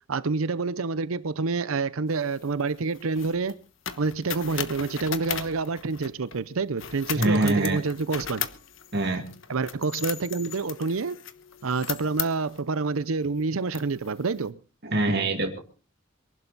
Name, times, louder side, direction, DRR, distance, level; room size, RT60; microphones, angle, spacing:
voice 1, 0.1-3.5 4.0-8.5 9.5-11.2 11.6-14.6, right 4 dB, 85° right, 0.7 m, -28 dB
sound 1, 2.1-6.4 6.8-12.6 13.2-13.3 13.7-14.4, left 10 dB, 65° left, 1.2 m, -37 dB
voice 2, 7.1-7.8 8.9-9.2 14.8-15.6, right 2 dB, 55° right, 2.2 m, -24 dB
23.5 x 11.5 x 4.1 m
head